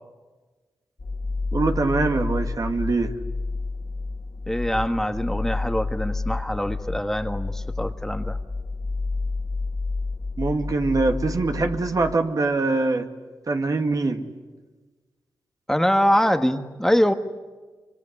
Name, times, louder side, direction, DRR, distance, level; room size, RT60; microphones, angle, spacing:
sound 1, 1.0-12.1, left 3 dB, 45° left, 2.6 m, -30 dB
voice 1, 1.5-3.1 10.4-13.1 13.5-14.2, right 3 dB, 50° right, 5 dB, 2.3 m, -23 dB
voice 2, 4.5-8.4 15.7-17.1, equal, 5° left, 8 dB, 1.5 m, -23 dB
25.0 x 24.5 x 9.9 m, 1.3 s
cardioid pair, 55°, 8 cm